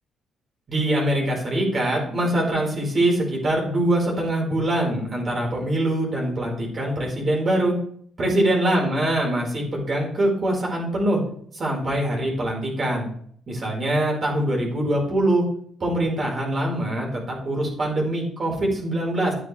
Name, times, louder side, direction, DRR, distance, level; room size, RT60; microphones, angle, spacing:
voice 1, 0.7-7.7 8.2-11.2 11.5-13.1 13.5-15.4 15.8-19.3, right 1 dB, 40° right, -1 dB, 4.7 m, -23 dB
11.5 x 8.9 x 3.4 m, 0.62 s
cardioid pair, 90°, 0 cm